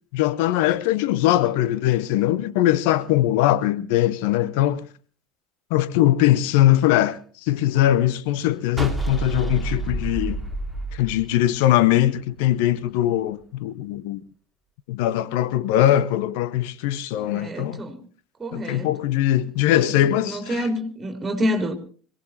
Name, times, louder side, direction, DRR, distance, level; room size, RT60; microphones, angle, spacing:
voice 1, 0.1-4.8 5.7-10.4 10.9-14.2 14.9-17.8 18.5-20.4, left 13 dB, 65° left, 0.8 m, -21 dB
sound 1, 8.8-12.0, right 2 dB, ahead, 2.2 m, -28 dB
voice 2, 17.1-18.0 18.4-18.9 19.4-21.7, equal, 25° right, 3.3 m, -28 dB
25.5 x 17.5 x 2.8 m
figure-of-eight pair, 70°, 0 cm